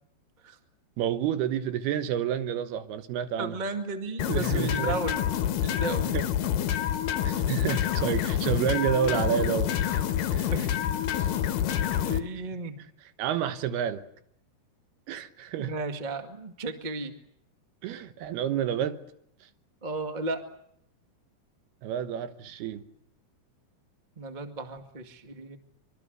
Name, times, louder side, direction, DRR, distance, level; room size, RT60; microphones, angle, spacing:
voice 1, 1.0-3.6 4.3-5.0 6.1-6.3 7.2-10.0 10.3-10.5 13.2-14.0 15.1-15.7 17.8-19.0 21.8-22.8, right 9 dB, 80° right, 3.1 m, -29 dB
voice 2, 3.4-5.2 5.6-6.2 10.5-10.8 11.1-11.3 11.9-12.8 15.6-17.1 19.8-20.5 24.2-25.6, right 2 dB, 30° right, 0.8 m, -34 dB
sound 1, 4.2-12.2, left 10 dB, 65° left, 2.7 m, -27 dB
24.5 x 24.0 x 8.0 m
omnidirectional pair, 4.6 m